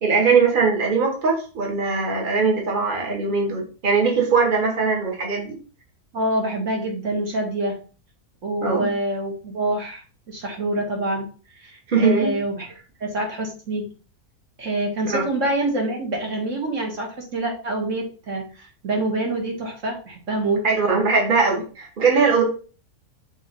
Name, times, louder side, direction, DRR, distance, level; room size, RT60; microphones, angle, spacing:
voice 1, 0.0-5.6 8.6-8.9 11.9-12.3 15.1-15.3 20.6-22.4, right 4 dB, 35° right, 0 dB, 1.6 m, -20 dB
voice 2, 6.1-7.8 8.4-11.3 11.6-12.7 13.0-13.8 14.6-20.6, right 2 dB, 55° right, 0 dB, 2.1 m, -26 dB
6.3 x 3.0 x 5.3 m, 0.37 s
omnidirectional pair, 1.6 m